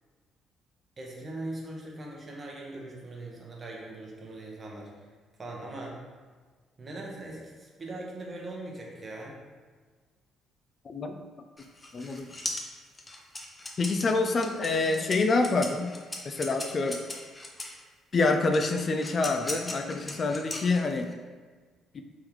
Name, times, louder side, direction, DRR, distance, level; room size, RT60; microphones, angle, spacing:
voice 1, 1.0-5.1 5.4-6.0 6.8-9.4, right 2 dB, 40° right, -2 dB, 1.0 m, -40 dB
sound 1, 11.6-17.8 18.5-21.1, left 2 dB, 25° left, 0.7 m, -38 dB
voice 2, 11.9-12.3 13.8-15.9 16.2-17.0 18.1-21.1 21.9-22.0, left 3 dB, 45° left, 6 dB, 0.3 m, -26 dB
3.6 x 3.4 x 3.0 m, 1.5 s
hypercardioid pair, 50°, 0 cm